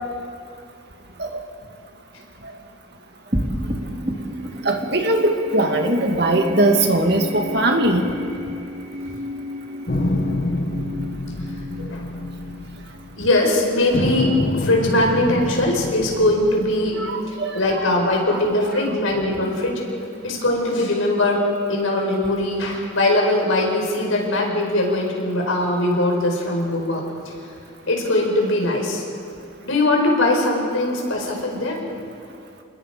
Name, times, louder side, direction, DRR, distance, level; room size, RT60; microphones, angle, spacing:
sound 1, 3.3-14.0, left 1 dB, 30° right, 2.3 m, -32 dB
voice 1, 4.6-8.0 17.0-17.6, right 1 dB, 55° right, 3 dB, 2.3 m, -20 dB
sound 2, 9.9-13.5 13.9-17.3, left 1 dB, 45° left, 1.0 m, -27 dB
voice 2, 13.2-19.8 20.2-27.0 27.9-29.0 29.7-31.8, left 1 dB, 80° left, 0 dB, 5.2 m, -21 dB
28.5 x 21.0 x 5.1 m, 2.4 s
head